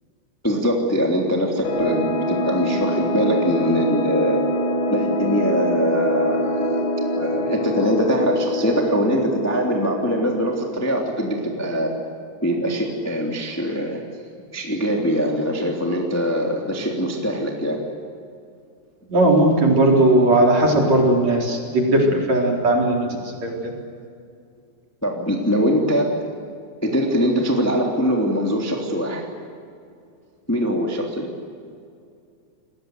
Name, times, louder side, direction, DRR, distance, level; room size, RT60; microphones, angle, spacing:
voice 1, 0.4-4.4 4.9-6.8 7.2-11.9 12.4-14.0 14.5-17.8 25.0-26.2 26.8-29.3 30.5-31.3, equal, 5° left, 0 dB, 2.3 m, -22 dB
sound 1, 1.6-11.0, equal, 80° left, 5.4 m, -24 dB
voice 2, 19.1-23.6, right 1 dB, 40° right, 0 dB, 5.1 m, -17 dB
29.5 x 21.5 x 8.2 m, 2.4 s
omnidirectional pair, 5.0 m